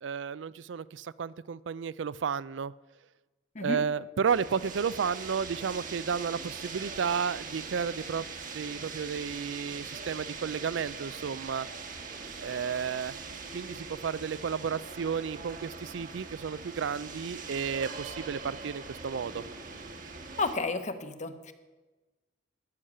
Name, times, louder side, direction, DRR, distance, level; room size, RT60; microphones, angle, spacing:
voice 1, 0.0-2.7 3.6-8.2 8.5-11.7 12.4-13.1 13.5-19.4, right 6 dB, 80° right, 20 dB, 0.4 m, -32 dB
sound 1, 4.2-20.5, right 4 dB, 50° right, 1.3 m, -42 dB
voice 2, 20.4-21.5, left 3 dB, 40° left, 9 dB, 1.0 m, -32 dB
13.0 x 6.5 x 10.0 m, 1.2 s
head